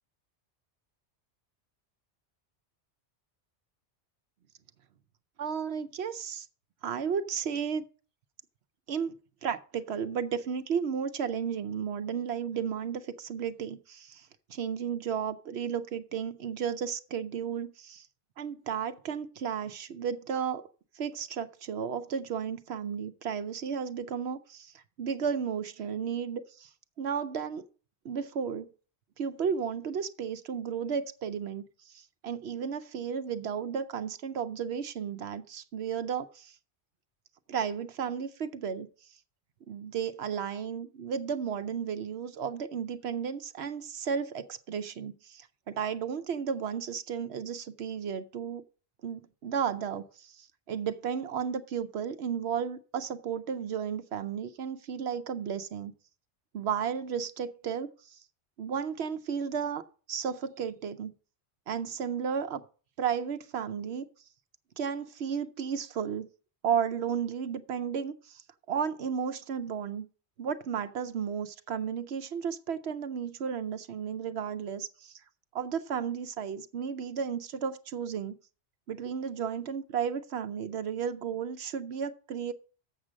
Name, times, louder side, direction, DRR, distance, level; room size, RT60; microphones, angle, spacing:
voice 1, 5.4-6.5 6.8-7.8 8.9-18.1 18.4-26.7 27.0-27.7 28.0-28.7 29.2-36.6 37.5-39.2 39.7-48.6 49.0-55.9 56.5-58.2 58.6-61.1 61.7-62.6 63.0-64.1 64.8-66.3 66.6-68.4 68.7-70.1 70.4-75.2 75.5-78.3 78.9-82.5, right 7 dB, 70° right, 0.9 m, -33 dB
7.4 x 6.2 x 7.3 m
omnidirectional pair, 1.2 m